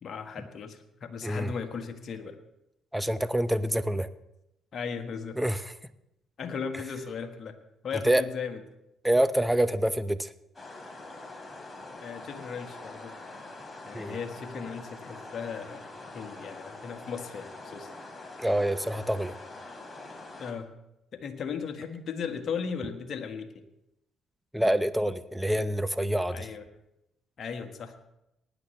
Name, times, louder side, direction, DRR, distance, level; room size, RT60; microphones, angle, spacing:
voice 1, 0.0-2.4 4.7-5.3 6.4-7.5 7.8-8.6 12.0-13.1 13.8-15.8 16.1-17.9 20.4-20.7 21.1-23.6 26.3-26.6 27.4-28.0, left 6 dB, 55° left, 6 dB, 1.6 m, -36 dB
voice 2, 2.9-4.1 5.4-5.6 8.0-8.2 9.0-10.3 13.9-14.2 18.4-19.4 24.5-26.5, right 1 dB, 5° right, 13 dB, 0.7 m, -26 dB
sound 1, 10.5-20.5, left 2 dB, 20° left, 3.0 m, -44 dB
19.0 x 10.0 x 3.3 m, 0.87 s
supercardioid pair, 60°, 0 cm